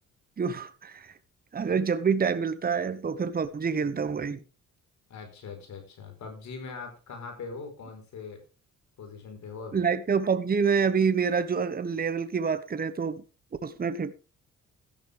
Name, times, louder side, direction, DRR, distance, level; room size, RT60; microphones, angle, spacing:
voice 1, 0.4-1.1 1.5-4.4 9.7-13.2 13.6-14.1, right 6 dB, 30° right, 1.1 m, -27 dB
voice 2, 5.1-8.4 9.0-9.8, left 4 dB, 65° left, 4.6 m, -41 dB
13.5 x 11.0 x 3.5 m
cardioid pair, 90°, 30 cm